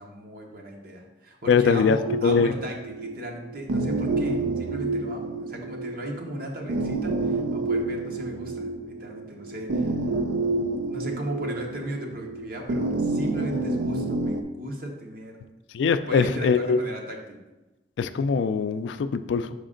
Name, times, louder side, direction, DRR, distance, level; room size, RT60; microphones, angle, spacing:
voice 1, 0.0-9.9 10.9-15.4 16.1-17.4, right 1 dB, 55° right, 2 dB, 0.9 m, -36 dB
voice 2, 1.5-2.0 2.2-2.5 15.7-16.8 18.0-19.5, left 5 dB, 85° left, 11 dB, 0.3 m, -22 dB
sound 1, 2.1-14.4, right 2 dB, 85° right, 0.4 m, -29 dB
5.2 x 4.9 x 3.8 m, 1.1 s
head